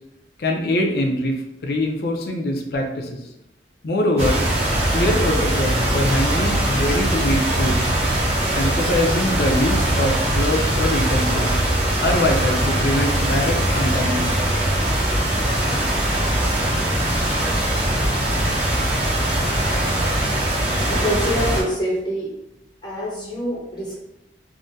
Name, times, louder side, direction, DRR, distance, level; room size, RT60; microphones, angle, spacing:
voice 1, 0.4-1.3 1.6-3.2 3.8-4.4 4.9-7.9 8.6-11.6 12.0-14.4, left 1 dB, 60° left, 2 dB, 0.5 m, -23 dB
sound 1, 4.2-21.6, right 1 dB, 35° right, 0.9 m, -21 dB
voice 2, 20.9-22.3 22.8-24.0, equal, 25° left, -5 dB, 0.6 m, -25 dB
3.6 x 2.1 x 2.6 m, 0.86 s
head